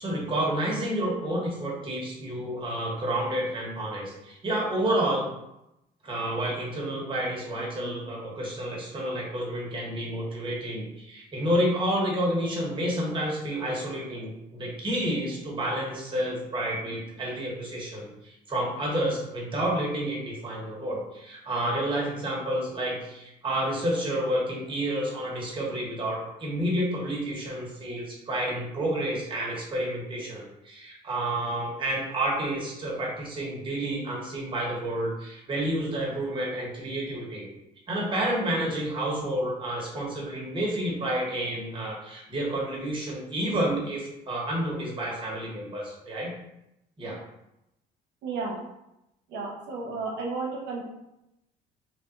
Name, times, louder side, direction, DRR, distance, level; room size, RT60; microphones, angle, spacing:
voice 1, 0.0-5.3 6.0-37.5 37.9-46.3 47.0-47.2, right 1 dB, 30° right, -4 dB, 1.5 m, -30 dB
voice 2, 48.2-48.6 49.3-50.8, right 4 dB, 85° right, -2 dB, 1.0 m, -32 dB
3.5 x 2.7 x 3.8 m, 0.87 s
cardioid pair, 110°, 17 cm